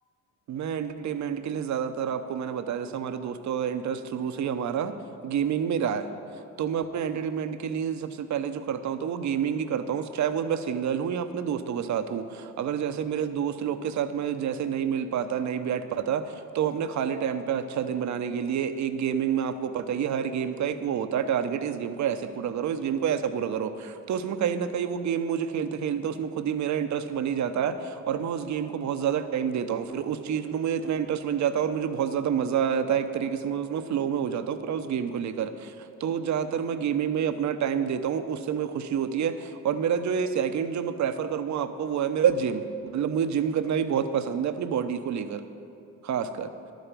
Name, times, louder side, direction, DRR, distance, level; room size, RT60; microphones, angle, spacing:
voice 1, 0.5-5.0 5.2-6.1 6.6-45.4 46.0-46.5, right 8 dB, 50° right, 10 dB, 0.8 m, -28 dB
11.5 x 9.2 x 5.1 m, 2.6 s
hypercardioid pair, 60°, 36 cm